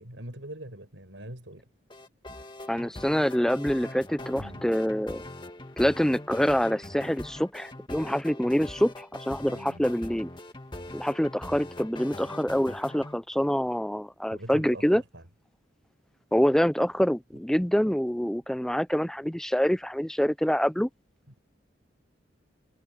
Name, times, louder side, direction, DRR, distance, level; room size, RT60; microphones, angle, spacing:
voice 1, 0.0-1.7 4.4-4.7 9.5-9.9 14.3-15.3 21.3-21.4, right 1 dB, 85° right, 7.1 m, -43 dB
sound 1, 1.9-13.2, left 1 dB, 25° left, 1.7 m, -42 dB
voice 2, 2.7-5.2 5.8-10.3 10.9-15.0 16.3-20.9, equal, 5° left, 0.4 m, -26 dB
head